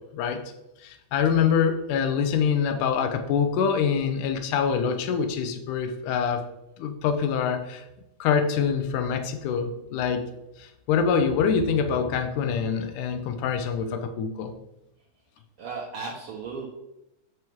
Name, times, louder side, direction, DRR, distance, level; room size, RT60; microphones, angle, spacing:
voice 1, 0.8-6.4 6.8-7.9 8.2-10.3 10.6-14.5, left 6 dB, 80° left, 7 dB, 2.3 m, -25 dB
voice 2, 15.6-16.7, right 4 dB, 60° right, -2 dB, 1.6 m, -35 dB
9.1 x 6.4 x 3.6 m, 0.88 s
omnidirectional pair, 3.6 m